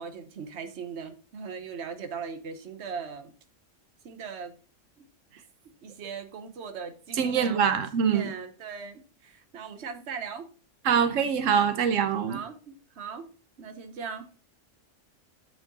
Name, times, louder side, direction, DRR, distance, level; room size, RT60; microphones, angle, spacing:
voice 1, 0.0-3.3 4.0-4.5 5.0-5.1 5.8-10.5 10.9-11.2 12.3-13.3 13.6-14.5, right 6 dB, 60° right, 1.2 m, -39 dB
voice 2, 7.2-8.3 10.8-12.4, right 7 dB, 90° right, 1.1 m, -24 dB
8.5 x 4.7 x 4.0 m
omnidirectional pair, 1.3 m